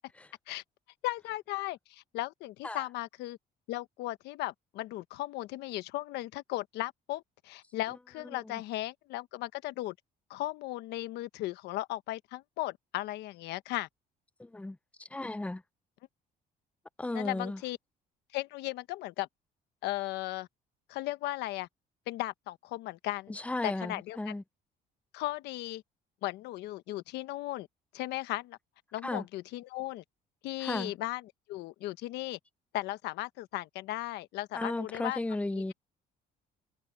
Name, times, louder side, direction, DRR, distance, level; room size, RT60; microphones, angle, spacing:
voice 1, 1.0-3.4 3.7-9.9 10.3-13.9 17.1-17.8 18.3-19.3 19.8-20.5 20.9-21.7 22.1-23.3 23.6-24.3 25.1-25.8 26.2-27.7 27.9-28.6 28.9-30.0 30.4-32.4 32.7-35.2 35.5-35.7, left 17 dB, 85° left, 1.1 m, -36 dB
voice 2, 14.4-14.8 15.1-15.6 17.0-17.6 23.3-24.4 29.0-29.2 30.6-30.9 34.5-35.7, left 2 dB, 10° left, 0.7 m, -35 dB
cardioid pair, 110°, 17 cm